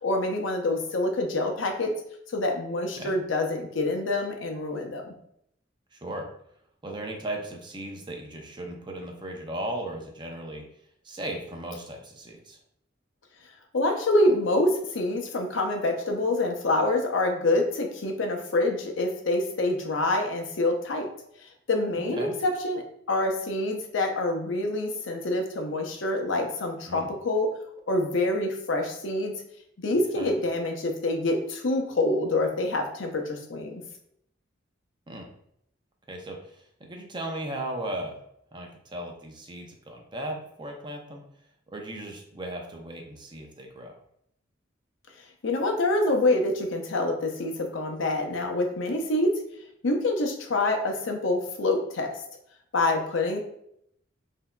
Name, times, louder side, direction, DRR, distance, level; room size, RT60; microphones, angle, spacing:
voice 1, 0.0-1.9 2.3-5.1 13.7-21.1 21.7-27.5 27.9-29.3 29.8-33.8 45.4-49.3 49.8-52.2 52.7-53.4, left 2 dB, 85° left, 3 dB, 0.7 m, -26 dB
voice 2, 5.9-6.3 6.8-10.6 11.0-12.6 22.1-22.3 26.9-27.1 30.1-30.3 35.1-35.2 36.1-38.2 38.5-41.2 41.7-44.0, right 1 dB, 25° right, 2 dB, 0.6 m, -36 dB
5.8 x 2.7 x 2.2 m, 0.73 s
head